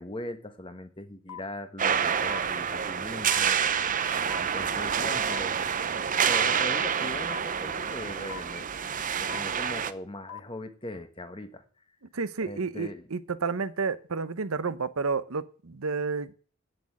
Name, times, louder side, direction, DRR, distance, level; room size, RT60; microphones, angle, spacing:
voice 1, 0.0-3.6 4.4-5.6 6.2-8.7 9.2-11.6 12.4-13.1, left 1 dB, 25° left, 9 dB, 1.3 m, -40 dB
sound 1, 1.3-1.4 2.3-2.4 3.3-3.4 4.3-4.4 5.3-5.4 6.3-6.4 7.3-7.4 8.3-8.4 9.3-9.4 10.3-10.4, left 8 dB, 75° left, 0.5 m, -39 dB
sound 2, 1.8-9.9, right 7 dB, 35° right, 0.7 m, -28 dB
voice 2, 12.1-16.3, right 4 dB, 65° right, 14 dB, 0.8 m, -31 dB
8.8 x 7.9 x 8.5 m, 0.42 s
head